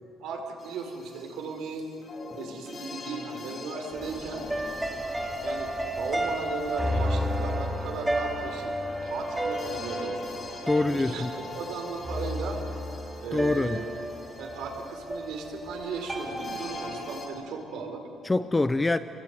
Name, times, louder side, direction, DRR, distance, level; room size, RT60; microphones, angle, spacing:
voice 1, 0.2-1.9 2.3-4.4 5.4-8.8 9.0-10.2 10.7-11.2 11.5-12.6 13.2-13.8 14.4-18.1, right 4 dB, 80° right, 3 dB, 4.7 m, -36 dB
sound 1, 0.6-17.3, left 3 dB, 30° left, 3.7 m, -45 dB
sound 2, 3.9-17.2, equal, 10° right, 2.8 m, -32 dB
voice 2, 10.7-11.3 13.3-13.8 18.2-19.0, left 2 dB, 15° left, 11 dB, 0.6 m, -25 dB
26.5 x 22.5 x 9.5 m, 2.6 s
cardioid pair, 155°, 0 cm